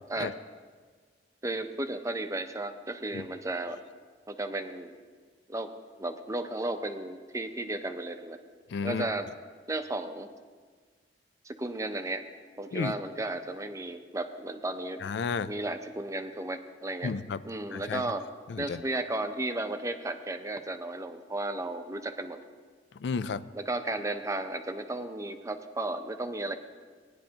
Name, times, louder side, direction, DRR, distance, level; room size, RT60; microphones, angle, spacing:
voice 1, 1.4-3.8 4.3-4.9 5.5-5.7 6.0-8.4 8.8-9.3 9.7-10.3 11.4-12.2 12.6-15.0 15.5-17.1 17.4-18.2 18.6-22.4 23.5-26.6, right 2 dB, 20° right, 7 dB, 0.6 m, -34 dB
voice 2, 8.7-9.1 12.7-12.9 15.0-15.5 17.0-17.4 17.7-18.0 18.5-18.8 22.9-23.5, left 5 dB, 75° left, 15 dB, 0.4 m, -32 dB
18.5 x 10.5 x 2.9 m, 1.6 s
head